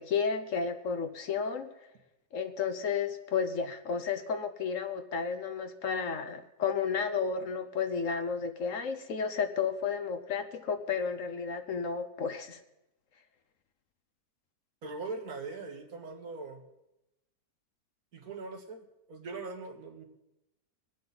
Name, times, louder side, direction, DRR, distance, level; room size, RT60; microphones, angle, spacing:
voice 1, 0.0-1.7 2.3-12.6, left 6 dB, 60° left, 8 dB, 1.1 m, -32 dB
voice 2, 14.8-16.6 18.1-20.0, right 3 dB, 70° right, 2 dB, 2.0 m, -41 dB
22.0 x 8.6 x 4.0 m, 0.91 s
omnidirectional pair, 1.7 m